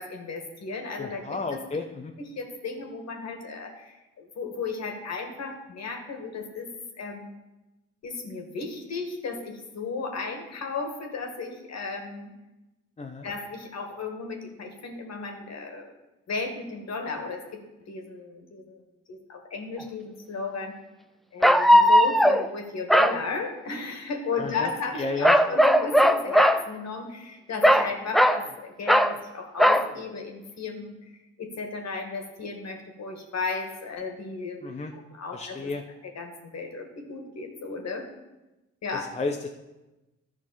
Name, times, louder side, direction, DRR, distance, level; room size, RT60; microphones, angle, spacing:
voice 1, 0.0-1.6 2.2-6.7 7.0-7.3 8.0-12.3 13.2-15.9 16.3-18.8 19.1-20.8 21.3-30.9 31.4-34.7 34.9-35.7 36.0-38.1 38.8-39.1, left 4 dB, 45° left, 4 dB, 2.0 m, -35 dB
voice 2, 1.0-2.1 13.0-13.3 24.3-24.7 25.0-25.4 34.6-34.9 35.3-35.8 39.1-39.5, left 3 dB, 20° left, 3 dB, 0.8 m, -32 dB
sound 1, 19.8-19.9 21.4-22.5 22.9-23.2 25.2-26.6 27.6-28.4 28.9-29.2 29.6-29.9, equal, ahead, 0.3 m, -18 dB
14.0 x 6.0 x 4.2 m, 1.0 s
figure-of-eight pair, 40°, 37 cm